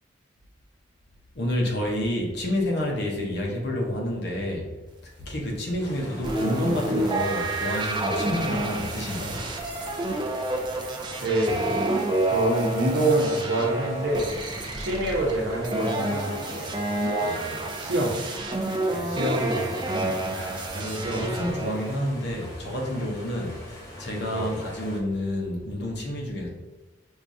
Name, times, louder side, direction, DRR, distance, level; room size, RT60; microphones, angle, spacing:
voice 1, 1.3-4.7 5.0-9.5 20.8-26.5, left 1 dB, 60° left, 0 dB, 0.7 m, -29 dB
sound 1, 5.8-25.0, left 1 dB, 15° left, 0.8 m, -43 dB
sound 2, 6.2-21.9, right 2 dB, 25° right, 0.3 m, -29 dB
voice 2, 11.2-11.7 12.3-14.3 14.8-16.7 17.2-18.2 18.9-21.4 24.3-24.6, right 1 dB, 70° right, -1 dB, 0.8 m, -27 dB
4.4 x 2.3 x 2.6 m, 1.1 s
head